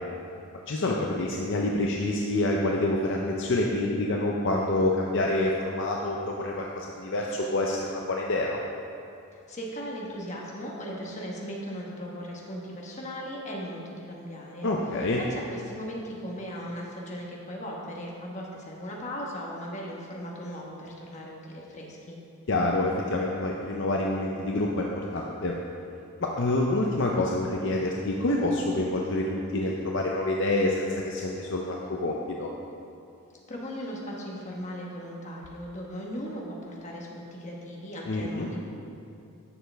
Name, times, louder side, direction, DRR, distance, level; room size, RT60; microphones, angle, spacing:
voice 1, 0.7-8.6 14.6-15.2 22.5-24.9 25.1-25.5 26.2-32.5 38.1-38.5, left 2 dB, 55° left, -1 dB, 0.6 m, -27 dB
voice 2, 9.3-14.7 15.2-22.2 33.5-38.6, equal, 30° left, -2 dB, 1.2 m, -38 dB
11.0 x 6.8 x 3.4 m, 2.6 s
head